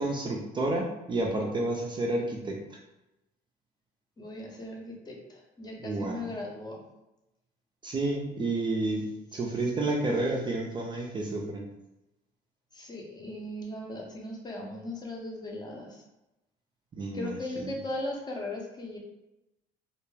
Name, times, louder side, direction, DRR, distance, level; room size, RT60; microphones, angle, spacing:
voice 1, 0.0-2.6 5.8-6.2 7.8-9.1 9.3-11.7 17.0-17.3 17.6-17.7, right 2 dB, 30° right, 0 dB, 0.4 m, -30 dB
voice 2, 4.2-6.8 12.7-16.0 17.1-19.0, left 1 dB, 25° left, -1 dB, 0.6 m, -38 dB
2.2 x 2.2 x 3.1 m, 0.93 s
cardioid pair, 110°, 17 cm